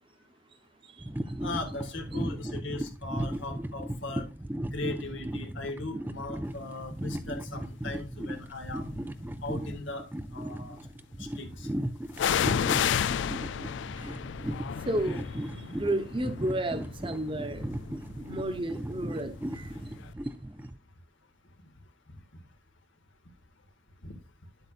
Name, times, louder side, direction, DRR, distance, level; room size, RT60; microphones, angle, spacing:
voice 1, 0.8-1.3 13.9-14.2 14.6-17.8 18.1-19.8, right 1 dB, 25° right, 0.9 m, -33 dB
sound 1, 1.0-20.8, right 1 dB, 10° right, 0.4 m, -36 dB
voice 2, 1.4-4.3 4.7-8.9 9.4-10.8 11.2-11.7 24.0-24.1, left 2 dB, 90° left, 1.8 m, -38 dB
sound 2, 7.2-7.6 8.3-9.3 12.2-19.8 20.1-20.2, left 8 dB, 70° left, 0.3 m, -32 dB
10.5 x 7.8 x 2.4 m
head